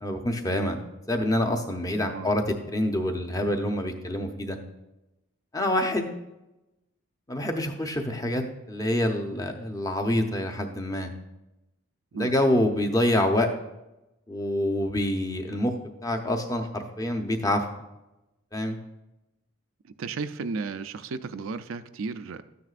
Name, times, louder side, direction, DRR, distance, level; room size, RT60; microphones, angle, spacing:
voice 1, 0.0-0.8 1.1-4.6 5.5-6.1 7.3-11.1 12.2-13.5 14.3-15.7 16.0-17.6 18.5-18.8, left 1 dB, 15° left, 4 dB, 0.7 m, -26 dB
voice 2, 20.0-22.4, right 4 dB, 80° right, 11 dB, 0.4 m, -34 dB
13.0 x 9.4 x 2.5 m, 0.96 s
head